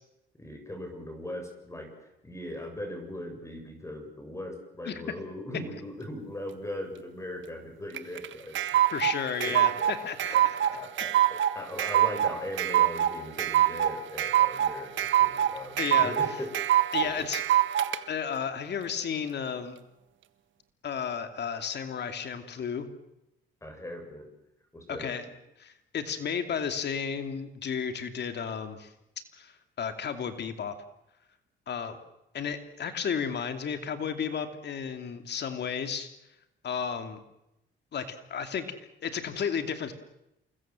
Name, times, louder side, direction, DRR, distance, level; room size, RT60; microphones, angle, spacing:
voice 1, 0.3-1.9 2.2-8.6 9.4-9.9 10.3-10.4 10.7-16.7 17.0-17.3 23.6-24.3 24.7-25.1, left 1 dB, 15° left, 5 dB, 7.3 m, -39 dB
sound 1, 7.9-18.0, right 11 dB, 75° right, 1.6 m, -25 dB
voice 2, 8.9-10.6 11.0-11.1 15.8-16.4 16.9-17.4 18.1-19.8 20.8-22.9 24.9-25.3 25.6-28.9 29.4-30.7 31.7-32.0 32.3-36.1 36.6-37.2 37.9-38.7 39.0-39.9, left 7 dB, 60° left, 8 dB, 2.7 m, -33 dB
28.5 x 21.5 x 7.7 m, 0.88 s
cardioid pair, 90°, 20 cm